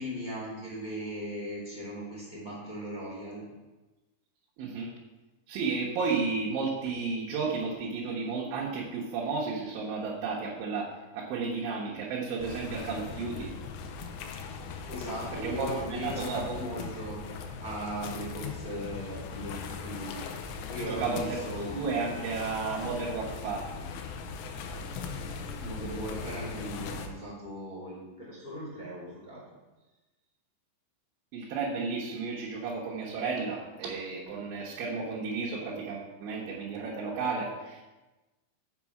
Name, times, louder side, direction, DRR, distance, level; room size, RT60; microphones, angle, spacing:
voice 1, 0.0-3.5 14.9-17.2 17.6-21.8 25.6-29.4, equal, 15° left, -7 dB, 2.1 m, -38 dB
voice 2, 4.6-4.9 5.5-13.5 15.4-16.4 20.9-21.4 21.7-23.7 31.3-37.8, right 4 dB, 75° right, -5 dB, 3.5 m, -33 dB
sound 1, 12.4-27.1, left 5 dB, 90° left, 3.4 m, -39 dB
7.1 x 7.0 x 5.9 m, 1.1 s
omnidirectional pair, 5.8 m